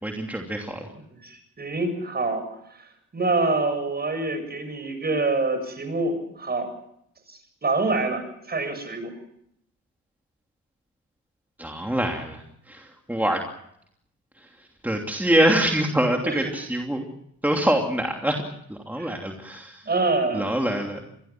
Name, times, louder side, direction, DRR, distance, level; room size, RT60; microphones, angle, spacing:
voice 1, 0.0-0.9 11.6-12.4 12.7-13.4 14.8-17.1 17.4-18.4 18.7-19.8 20.3-21.0, right 1 dB, 5° right, 2 dB, 2.9 m, -24 dB
voice 2, 1.1-2.5 2.8-2.9 3.1-6.7 7.3-9.1 16.2-16.5 19.0-19.2 19.8-20.6, right 3 dB, 30° right, 9 dB, 7.3 m, -26 dB
26.5 x 21.0 x 6.0 m, 0.75 s
cardioid pair, 90°, 30 cm